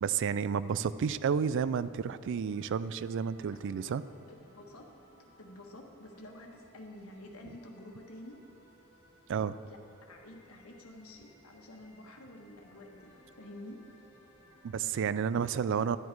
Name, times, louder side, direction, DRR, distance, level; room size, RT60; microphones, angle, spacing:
voice 1, 0.0-4.0 9.3-9.6 14.6-16.0, right 7 dB, 60° right, 16 dB, 0.3 m, -31 dB
sound 1, 2.5-14.8, equal, 25° left, 2.2 m, -62 dB
voice 2, 3.4-3.9 4.3-4.9 5.4-8.4 9.7-9.8 10.1-13.8, left 1 dB, 75° left, 1 dB, 1.4 m, -50 dB
12.0 x 9.4 x 4.6 m, 2.4 s
head